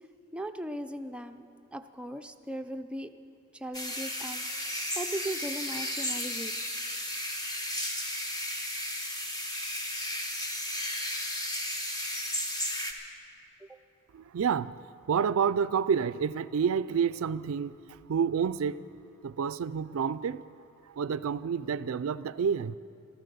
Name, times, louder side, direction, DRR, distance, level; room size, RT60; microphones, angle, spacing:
voice 1, 0.3-1.5 1.7-3.1 3.5-4.4 5.0-6.5 13.6-13.8, right 1 dB, 5° right, 0.5 m, -38 dB
sound 1, 3.7-12.9, left 1 dB, 20° left, 1.2 m, -34 dB
voice 2, 14.1-14.7 15.1-17.7 18.1-18.9 19.2-20.4 21.0-22.8, right 6 dB, 70° right, 0.4 m, -29 dB
14.0 x 13.5 x 6.9 m
head